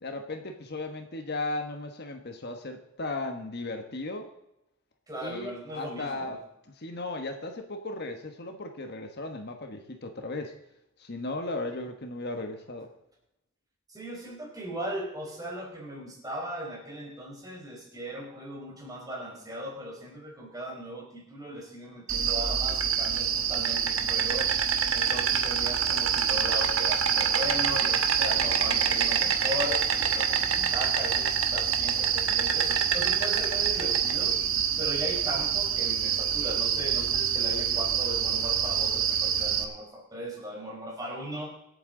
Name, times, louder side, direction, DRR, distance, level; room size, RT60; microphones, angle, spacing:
voice 1, 0.0-4.3 5.2-6.4 6.8-10.6 11.0-12.9, left 2 dB, 50° left, 5 dB, 1.3 m, -36 dB
voice 2, 5.1-6.4 13.9-41.5, equal, 20° right, -1 dB, 4.3 m, -38 dB
Insect, 22.1-39.6, right 8 dB, 70° right, 1.4 m, -26 dB
25.0 x 8.8 x 3.9 m, 0.87 s
head